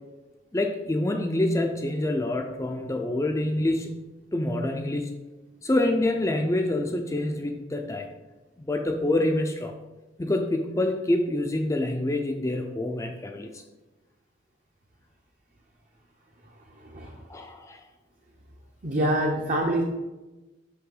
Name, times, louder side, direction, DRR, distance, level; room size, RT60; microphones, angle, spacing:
voice 1, 0.5-4.0 4.3-5.1 5.6-8.1 8.6-9.7 10.2-13.5 17.3-17.8, left 1 dB, 15° left, 4 dB, 0.4 m, -26 dB
voice 2, 18.8-19.8, right 1 dB, 40° right, 0 dB, 0.7 m, -25 dB
6.1 x 5.6 x 3.9 m, 1.1 s
head